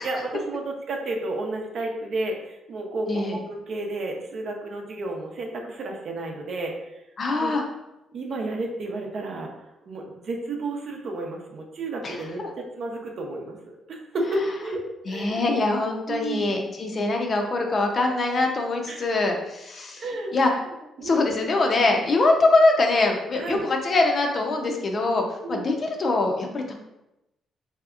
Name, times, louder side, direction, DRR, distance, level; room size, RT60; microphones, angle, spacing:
voice 1, 0.0-7.0 7.4-7.5 8.1-9.5 9.9-13.6 13.9-15.5 16.1-16.5 18.9-19.1 20.0-20.4 21.0-21.3 23.4-23.6 25.4-25.7, right 2 dB, 60° right, 2 dB, 0.6 m, -31 dB
voice 2, 7.2-7.6 12.0-12.5 15.1-20.0 20.3-20.5 21.0-26.7, left 2 dB, 45° left, 2 dB, 0.5 m, -23 dB
3.2 x 2.8 x 2.4 m, 0.90 s
cardioid pair, 90°, 0 cm